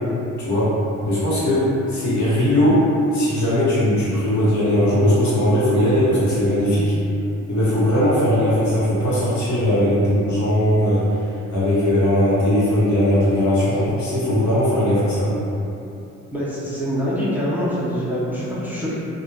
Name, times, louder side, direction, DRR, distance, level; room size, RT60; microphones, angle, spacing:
voice 1, 1.0-1.6 1.9-2.8 3.1-6.9 7.5-11.0 11.5-15.3, left 1 dB, 70° left, -9 dB, 1.1 m, -19 dB
voice 2, 16.3-19.0, equal, 5° right, -9 dB, 0.5 m, -24 dB
2.3 x 2.2 x 3.2 m, 2.8 s
cardioid pair, 90°, 30 cm